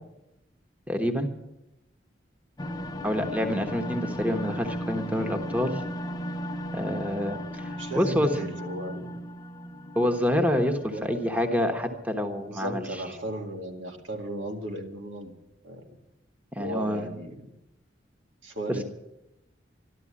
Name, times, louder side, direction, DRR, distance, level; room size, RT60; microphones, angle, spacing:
voice 1, 0.9-1.3 3.0-5.8 6.7-8.3 9.9-13.0 16.5-17.1, equal, 10° right, 5 dB, 1.2 m, -27 dB
sound 1, 2.6-12.0, equal, 20° left, 0.7 m, -36 dB
voice 2, 7.8-9.3 10.9-11.2 12.4-15.3 15.6-15.8 16.6-17.5 18.4-18.8, right 1 dB, 85° right, 2 dB, 2.2 m, -36 dB
13.0 x 12.5 x 8.6 m, 0.92 s
head